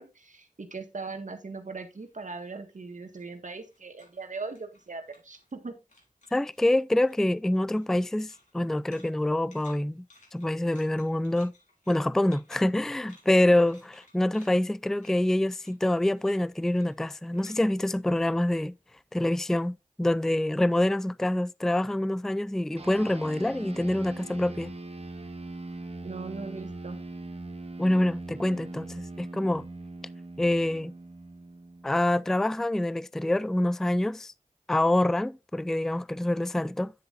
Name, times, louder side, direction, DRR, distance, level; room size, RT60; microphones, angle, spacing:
voice 1, 0.0-5.7 26.0-27.0, right 4 dB, 70° right, 1.7 m, -39 dB
sound 1, 1.7-5.6 5.9-6.7 7.0-18.8, left 2 dB, 65° left, 4.6 m, -60 dB
voice 2, 6.3-10.0 10.3-11.5 11.9-18.7 19.1-24.7 27.8-29.7 30.4-30.9 31.8-34.3 34.7-36.9, left 1 dB, 5° left, 0.3 m, -26 dB
sound 2, 22.8-32.5, right 2 dB, 50° right, 1.4 m, -41 dB
9.5 x 7.9 x 2.5 m
cardioid pair, 40°, 13 cm